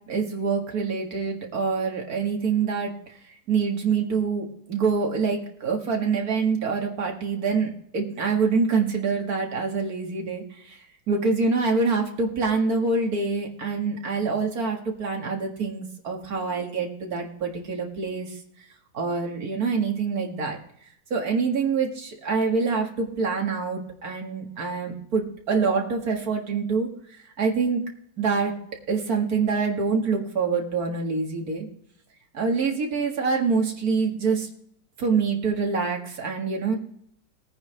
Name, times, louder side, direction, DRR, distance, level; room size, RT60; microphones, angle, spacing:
voice 1, 0.1-2.9 3.5-10.8 11.1-18.4 18.9-20.6 21.1-26.9 27.4-27.8 28.2-28.6 28.9-31.7 32.3-34.5 35.0-36.8, right 4 dB, 45° right, 1 dB, 2.2 m, -25 dB
20.0 x 9.4 x 3.4 m, 0.70 s
omnidirectional pair, 2.3 m